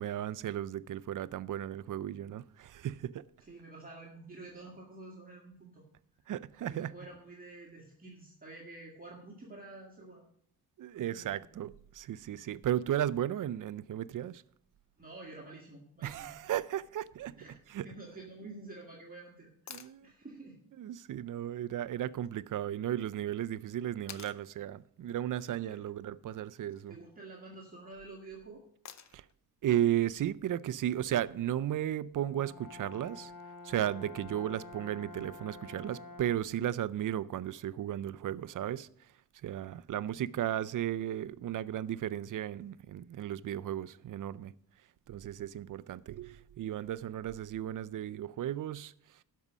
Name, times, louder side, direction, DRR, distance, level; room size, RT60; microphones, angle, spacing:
voice 1, 0.0-3.2 6.3-6.9 10.8-14.4 16.0-17.4 17.7-17.9 19.7-20.1 20.8-27.0 29.1-29.2 29.6-33.3 33.6-38.9 39.4-44.5 45.1-48.9, right 11 dB, 55° right, 0.5 m, -35 dB
voice 2, 3.4-5.8 6.6-10.2 11.0-11.4 15.0-16.3 17.4-17.6 17.8-20.6 25.7-25.8 26.9-28.6, right 2 dB, 20° right, 1.8 m, -49 dB
sound 1, 19.7-20.0 22.2-22.3 24.1-24.4 26.4-26.8 28.8-29.3 31.4-31.5, left 8 dB, 45° left, 0.7 m, -48 dB
Brass instrument, 32.2-36.6, left 3 dB, 60° left, 1.5 m, -48 dB
12.5 x 5.5 x 6.1 m
wide cardioid pair, 120°, 38 cm